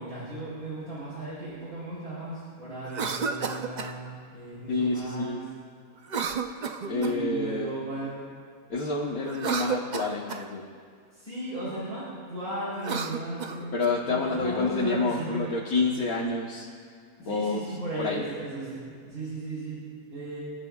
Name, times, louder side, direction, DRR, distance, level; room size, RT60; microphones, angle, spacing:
voice 1, 0.0-5.4 6.8-8.2 11.1-15.5 17.2-20.4, right 1 dB, 70° right, -9 dB, 4.2 m, -36 dB
Cough, 2.8-4.0 6.0-7.3 9.2-10.5 12.7-13.9, right 6 dB, 55° right, 0.5 m, -32 dB
voice 2, 4.7-5.4 6.9-7.7 8.7-10.6 13.7-16.7 17.2-17.6 18.0-18.2, left 3 dB, 70° left, -4 dB, 1.6 m, -28 dB
28.0 x 12.5 x 2.4 m, 2.2 s
omnidirectional pair, 1.6 m